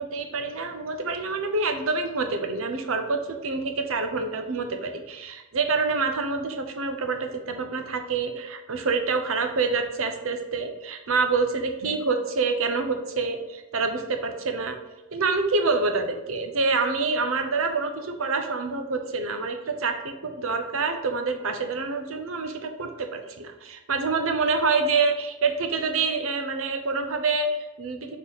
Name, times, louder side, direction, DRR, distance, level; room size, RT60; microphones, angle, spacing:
voice 1, 0.0-14.8 15.1-28.2, right 4 dB, 80° right, 5 dB, 0.8 m, -27 dB
6.2 x 3.8 x 4.0 m, 1.1 s
head